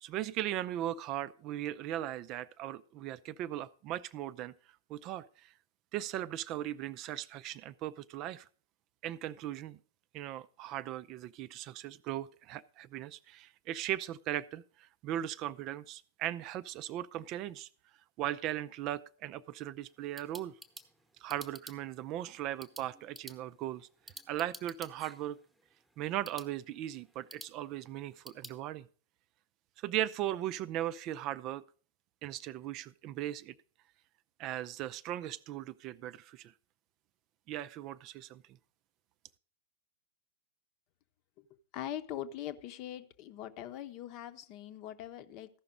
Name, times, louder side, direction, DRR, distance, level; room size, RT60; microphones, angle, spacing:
voice 1, 0.0-4.5 4.9-5.5 5.9-8.5 9.0-9.8 10.1-17.7 18.2-20.5 21.2-23.9 24.3-25.4 26.0-28.9 29.8-31.6 32.2-33.5 34.4-36.5 37.5-38.4, right 13 dB, 40° right, 16 dB, 0.4 m, -38 dB
sound 1, 19.8-28.6, right 1 dB, 5° right, 1.0 m, -53 dB
voice 2, 41.7-45.5, left 11 dB, 40° left, 11 dB, 0.8 m, -42 dB
14.5 x 5.8 x 5.2 m, 0.42 s
figure-of-eight pair, 100°, 0 cm